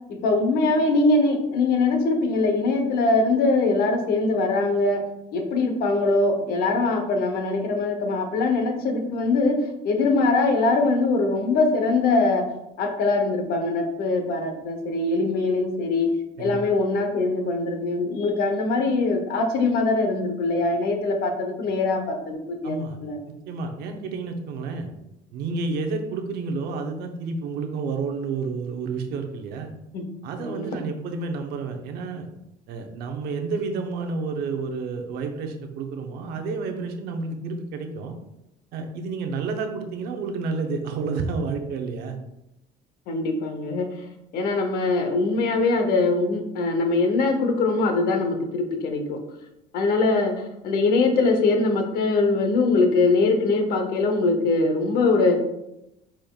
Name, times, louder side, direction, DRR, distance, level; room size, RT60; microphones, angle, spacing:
voice 1, 0.1-5.0 5.3-12.5 12.8-16.1 16.4-23.2 29.9-30.7 43.1-43.9 44.3-49.2 49.7-55.4, left 3 dB, 65° left, 5 dB, 0.8 m, -22 dB
voice 2, 22.6-23.0 23.3-24.9 25.3-29.7 30.2-32.3 32.7-38.2 38.7-42.2, right 4 dB, 75° right, 4 dB, 0.8 m, -30 dB
5.0 x 4.4 x 2.3 m, 0.87 s
cardioid pair, 145°, 17 cm